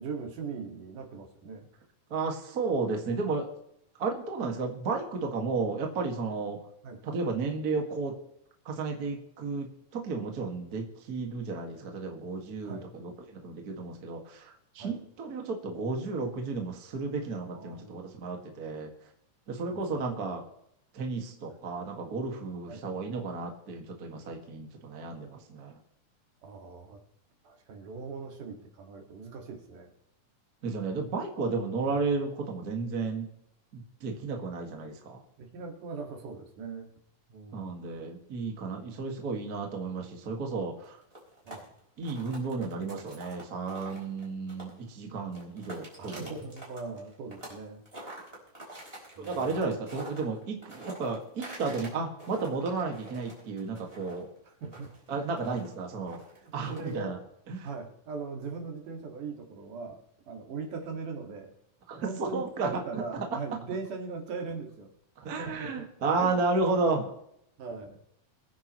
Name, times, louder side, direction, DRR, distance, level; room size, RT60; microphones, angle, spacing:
voice 1, 0.0-1.7 6.8-7.0 12.6-12.9 14.8-15.0 17.5-18.1 19.7-20.1 21.5-21.6 22.7-22.8 26.4-27.0 27.4-29.9 35.4-36.9 37.3-37.9 41.5-41.7 46.0-47.8 49.2-49.6 54.5-55.6 56.3-57.2 57.6-60.0 60.3-61.5 62.0-64.9 65.2-66.6 67.6-68.0, right 4 dB, 70° right, 2 dB, 3.5 m, -40 dB
voice 2, 2.1-3.5 4.0-6.6 7.0-8.1 8.7-18.9 19.5-20.4 20.9-25.8 30.6-33.3 33.7-35.2 37.5-41.0 42.0-46.4 49.2-54.3 55.1-56.2 56.5-57.2 57.5-57.7 61.9-63.0 65.2-67.1, right 4 dB, 35° right, 2 dB, 1.8 m, -33 dB
sound 1, 40.8-44.9 45.2-47.6 47.9-51.9 52.2-57.0, right 1 dB, 15° right, 4.5 m, -46 dB
24.0 x 9.8 x 3.1 m, 0.74 s
omnidirectional pair, 3.8 m